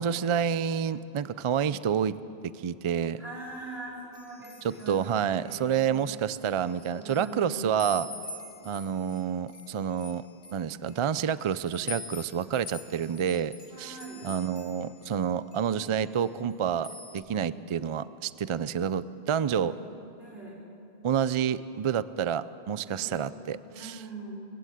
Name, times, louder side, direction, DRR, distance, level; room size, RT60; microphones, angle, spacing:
voice 1, 0.0-2.2 2.6-3.2 4.6-8.1 8.6-10.3 10.5-13.5 13.8-14.0 14.2-19.7 21.0-24.0, right 8 dB, 50° right, 16 dB, 0.3 m, -29 dB
voice 2, 3.2-6.2 6.9-7.9 13.7-14.3 19.3-19.8 20.2-20.6 22.9-23.3 23.7-24.3, right 2 dB, 65° right, -5 dB, 5.1 m, -42 dB
sound 1, 4.1-6.0 6.4-7.4 7.8-15.2 15.5-16.5 16.8-17.2, left 3 dB, 90° left, 1.7 m, -45 dB
21.5 x 16.0 x 8.0 m, 2.7 s
omnidirectional pair, 1.1 m